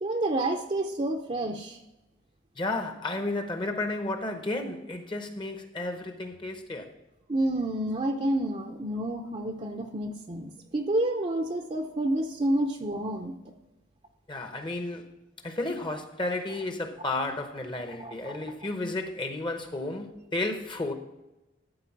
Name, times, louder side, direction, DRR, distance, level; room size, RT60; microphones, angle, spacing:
voice 1, 0.0-1.8 7.3-13.5 18.0-18.1, right 1 dB, 35° right, 0.6 m, -29 dB
voice 2, 2.6-6.9 14.3-15.1 15.4-20.9, left 2 dB, 25° left, 0.8 m, -32 dB
13.0 x 4.3 x 7.1 m
head